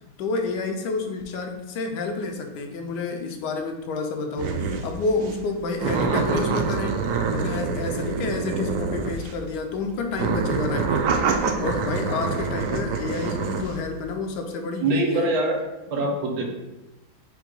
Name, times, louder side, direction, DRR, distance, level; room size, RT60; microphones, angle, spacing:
voice 1, 0.2-11.2 11.6-15.3 16.4-16.5, left 3 dB, 85° left, 4 dB, 1.2 m, -29 dB
sound 1, 4.4-4.9 5.2-5.4 5.8-9.5 10.1-13.7, right 5 dB, 70° right, 0.8 m, -26 dB
voice 2, 14.8-15.6 15.9-16.4, right 2 dB, 50° right, 0 dB, 0.4 m, -23 dB
4.9 x 2.2 x 4.6 m, 1.0 s
omnidirectional pair, 1.8 m